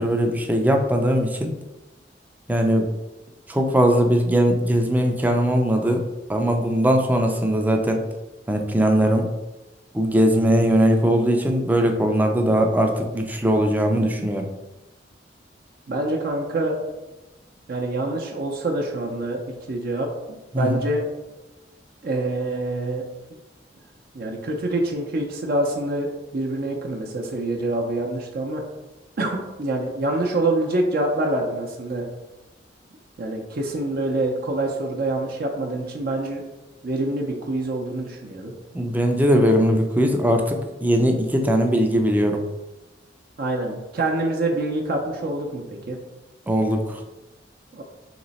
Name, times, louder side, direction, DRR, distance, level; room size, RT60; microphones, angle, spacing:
voice 1, 0.0-1.5 2.5-2.9 3.5-6.0 6.3-8.0 8.5-9.3 9.9-14.5 20.5-20.8 38.7-42.4 46.5-47.0, equal, 10° right, 3 dB, 0.4 m, -20 dB
voice 2, 15.9-16.8 17.7-19.4 19.7-20.1 20.5-21.0 22.0-23.0 23.3-23.4 24.1-26.1 26.3-28.6 29.2-32.0 33.2-36.4 36.8-38.5 43.4-46.0 47.7-47.8, right 2 dB, 55° right, 0 dB, 0.6 m, -26 dB
3.1 x 3.0 x 4.1 m, 1.0 s
head